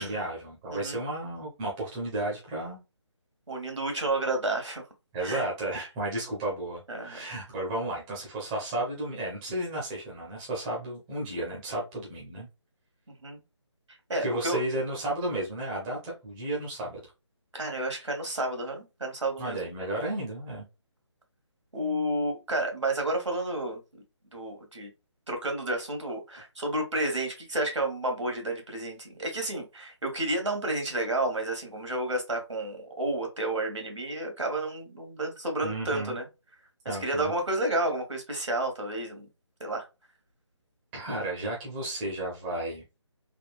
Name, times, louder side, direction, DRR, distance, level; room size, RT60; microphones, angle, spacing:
voice 1, 0.0-2.8 5.1-12.5 14.2-17.0 19.4-20.6 35.6-36.2 36.9-37.3 40.9-42.8, right 1 dB, 10° right, -3 dB, 0.6 m, -33 dB
voice 2, 3.5-4.9 5.2-5.5 6.9-7.2 13.2-13.4 14.1-14.6 17.5-19.6 21.7-23.8 24.3-24.9 25.3-36.3 36.8-39.3 39.6-39.8, right 1 dB, 80° right, 3 dB, 1.3 m, -31 dB
3.5 x 2.1 x 2.4 m, 0.26 s
figure-of-eight pair, 150°, 15 cm